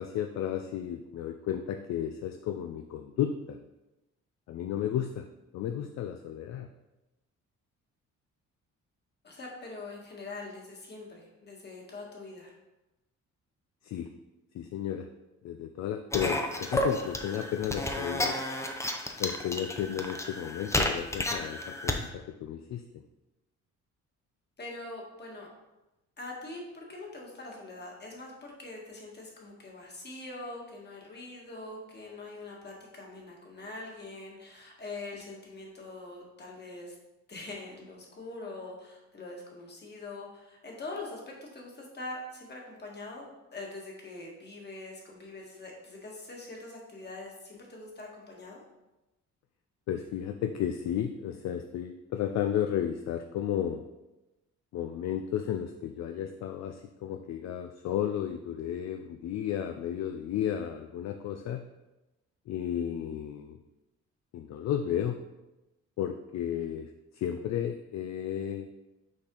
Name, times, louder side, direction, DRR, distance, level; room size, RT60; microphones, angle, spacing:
voice 1, 0.0-3.6 4.5-5.3 5.5-6.7 13.8-14.1 14.5-15.1 15.4-18.4 19.2-22.8 49.9-53.8 54.7-61.7 62.5-63.6 64.3-65.2 66.0-68.7, left 10 dB, 60° left, 6 dB, 0.4 m, -33 dB
voice 2, 9.2-12.5 24.6-25.5 26.2-36.9 37.3-48.6, left 2 dB, 35° left, -1 dB, 1.7 m, -43 dB
sound 1, 16.1-22.0, left 1 dB, 10° left, 0.6 m, -32 dB
6.2 x 4.2 x 3.8 m, 1.0 s
cardioid pair, 90°, 30 cm